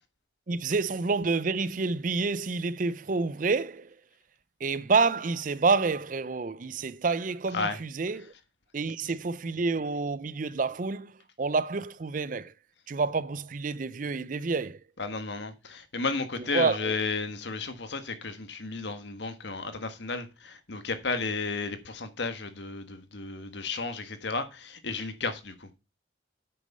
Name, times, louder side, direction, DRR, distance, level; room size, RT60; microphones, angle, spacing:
voice 1, 0.5-3.9 4.6-8.3 8.7-11.1 11.4-12.5 12.9-14.8 16.5-16.9, right 4 dB, 45° right, 0.5 m, -28 dB
voice 2, 15.0-25.8, left 4 dB, 65° left, 1.5 m, -33 dB
9.0 x 6.4 x 5.4 m
head